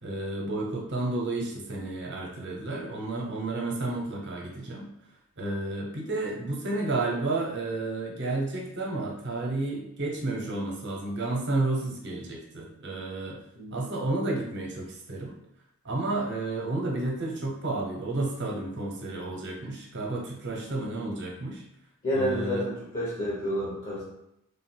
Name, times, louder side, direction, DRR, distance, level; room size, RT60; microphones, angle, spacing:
voice 1, 0.0-4.9 5.4-13.4 13.7-15.3 15.8-21.6 22.1-22.7, right 2 dB, 55° right, -1 dB, 0.9 m, -31 dB
voice 2, 22.0-24.0, equal, 35° left, -8 dB, 1.1 m, -29 dB
3.3 x 2.5 x 4.4 m, 0.79 s
head